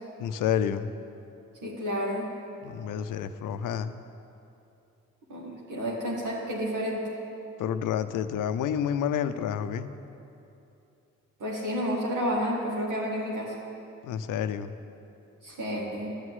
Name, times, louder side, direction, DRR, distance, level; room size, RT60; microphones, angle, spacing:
voice 1, 0.2-1.0 2.6-3.9 7.6-9.9 14.0-14.7, left 9 dB, 85° left, 11 dB, 0.6 m, -29 dB
voice 2, 1.6-2.3 5.3-7.0 11.4-13.5 15.4-16.2, equal, 80° right, -5 dB, 2.1 m, -30 dB
12.0 x 6.3 x 9.3 m, 2.8 s
cardioid pair, 60°, 31 cm